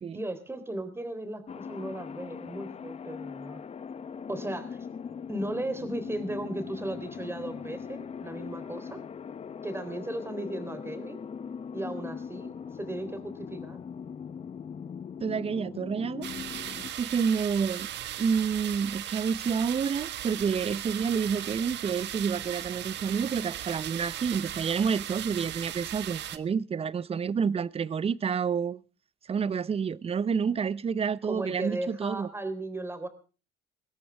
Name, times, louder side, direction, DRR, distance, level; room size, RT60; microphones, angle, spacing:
voice 1, 0.1-3.6 4.3-4.8 5.3-9.0 9.6-11.2 11.7-13.8 31.3-33.1, right 1 dB, 10° right, 3.6 m, -36 dB
sound 1, 1.5-16.9, left 6 dB, 30° left, 0.9 m, -40 dB
voice 2, 15.2-16.3 17.0-17.9 18.2-28.8 29.3-32.3, right 6 dB, 30° right, 0.7 m, -29 dB
sound 2, 16.2-26.4, right 11 dB, 55° right, 1.4 m, -37 dB
21.5 x 17.0 x 3.5 m
cardioid pair, 110°, 21 cm